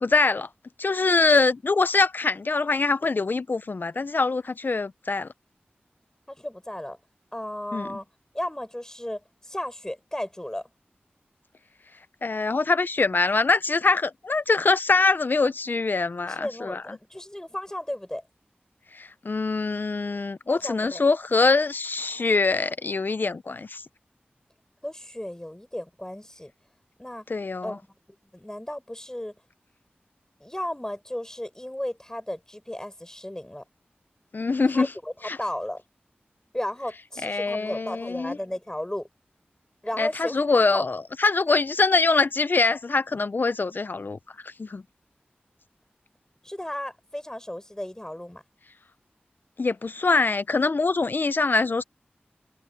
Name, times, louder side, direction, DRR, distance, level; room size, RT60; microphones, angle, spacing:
voice 1, 0.0-0.5 0.8-5.3 7.7-7.9 12.2-16.8 18.9-23.8 27.3-27.8 34.3-34.9 35.2-35.4 37.2-38.4 40.0-44.2 44.4-44.8 49.6-51.8, left 3 dB, 60° left, 0.6 m, -24 dB
voice 2, 6.3-7.0 7.3-8.1 8.3-10.7 16.2-18.2 20.5-21.0 24.8-26.5 27.0-27.3 27.6-27.8 28.3-29.3 30.4-33.6 34.7-35.1 35.4-35.8 36.5-39.1 39.8-40.4 40.7-40.9 46.4-48.4, left 1 dB, 15° left, 5.5 m, -34 dB
wide cardioid pair, 50°, 4 cm